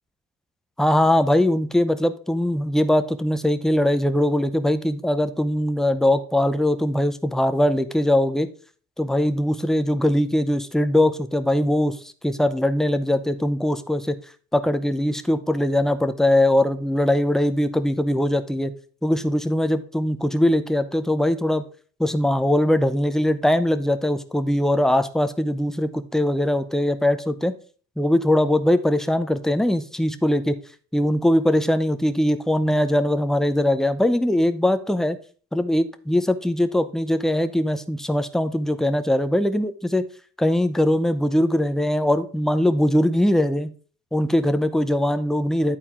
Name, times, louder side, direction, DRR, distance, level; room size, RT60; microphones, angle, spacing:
voice 1, 0.8-8.5 9.0-12.0 12.2-14.2 14.5-18.7 19.0-21.6 22.0-27.5 28.0-30.6 30.9-35.2 35.5-40.1 40.4-43.7 44.1-45.8, left 1 dB, ahead, 9 dB, 0.6 m, -21 dB
10.5 x 4.3 x 3.6 m, 0.41 s
cardioid pair, 90°, 30 cm